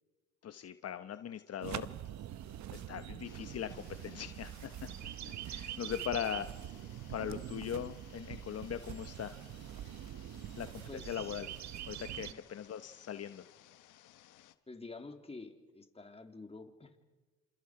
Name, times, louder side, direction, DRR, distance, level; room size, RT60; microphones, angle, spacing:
voice 1, 0.4-1.9 2.7-4.7 5.0-5.1 5.5-6.5 7.1-9.3 10.6-11.5 11.9-13.4, left 9 dB, 55° left, 10 dB, 1.0 m, -40 dB
sound 1, 1.6-12.3, right 11 dB, 65° right, 1.0 m, -44 dB
sound 2, 3.2-14.6, left 13 dB, 90° left, 1.2 m, -61 dB
voice 2, 10.9-11.4 12.2-12.4 14.7-17.0, left 3 dB, 20° left, 5 dB, 2.9 m, -49 dB
29.5 x 27.5 x 4.8 m, 1.2 s
cardioid pair, 90°, 30 cm